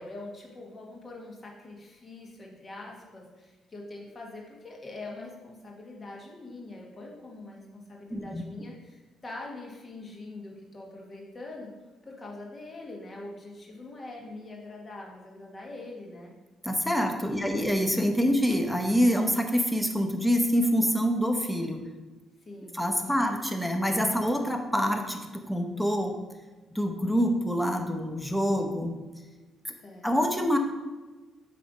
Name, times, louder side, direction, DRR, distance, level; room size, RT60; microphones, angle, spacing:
voice 1, 0.0-11.7 12.0-16.3 17.2-17.6 22.4-23.1 24.1-24.5 29.8-30.1, left 2 dB, 35° left, -1 dB, 1.7 m, -43 dB
voice 2, 8.1-8.4 16.6-21.8 22.7-26.1 26.7-28.9 29.6-29.7 30.0-30.6, equal, 5° left, 4 dB, 0.9 m, -26 dB
7.6 x 3.4 x 5.2 m, 1.3 s
cardioid pair, 90°, 0 cm